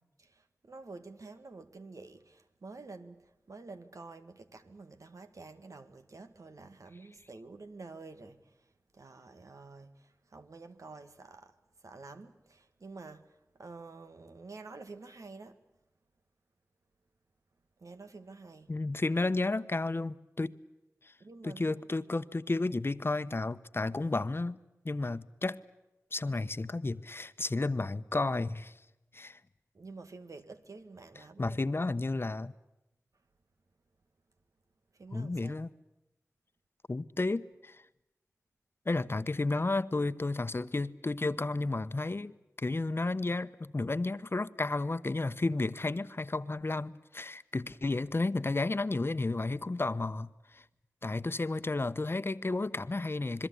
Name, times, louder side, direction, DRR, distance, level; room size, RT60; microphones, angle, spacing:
voice 1, 0.2-8.6 8.9-11.5 11.8-15.6 17.8-18.7 21.2-21.8 29.7-31.6 35.0-35.6, right 3 dB, 80° right, 1.8 m, -49 dB
voice 2, 18.7-20.6 21.4-24.6 24.8-25.6 26.1-28.7 29.1-29.4 31.4-32.5 35.1-35.7 36.9-37.8 38.9-42.3 42.6-50.6 51.0-53.5, left 2 dB, 45° left, 1.0 m, -32 dB
27.0 x 22.0 x 8.5 m
wide cardioid pair, 65°, 6 cm